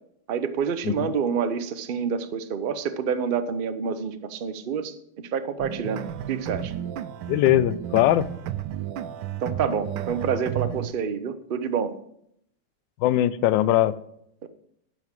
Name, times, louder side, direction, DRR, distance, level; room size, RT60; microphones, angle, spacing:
voice 1, 0.3-6.7 9.4-12.0 14.4-14.5, right 6 dB, 70° right, 10 dB, 0.5 m, -28 dB
sound 1, 5.6-10.9, right 11 dB, 90° right, 1.3 m, -32 dB
voice 2, 7.3-8.3 13.0-13.9, left 13 dB, 80° left, 16 dB, 1.3 m, -20 dB
11.0 x 5.9 x 7.4 m, 0.73 s
omnidirectional pair, 2.0 m